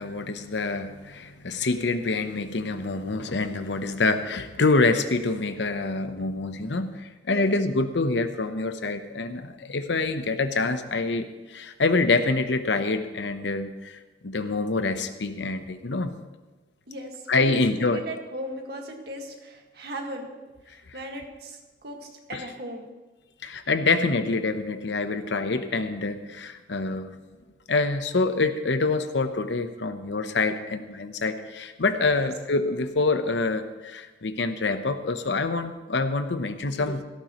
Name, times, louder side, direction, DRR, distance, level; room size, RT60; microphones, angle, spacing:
voice 1, 0.0-16.2 17.3-18.0 22.3-22.4 23.4-27.1 27.7-37.0, left 3 dB, 80° left, 9 dB, 0.9 m, -26 dB
voice 2, 16.9-20.3 20.7-22.9 32.1-32.3, right 1 dB, 60° right, 2 dB, 1.8 m, -38 dB
16.5 x 13.5 x 3.1 m, 1.2 s
head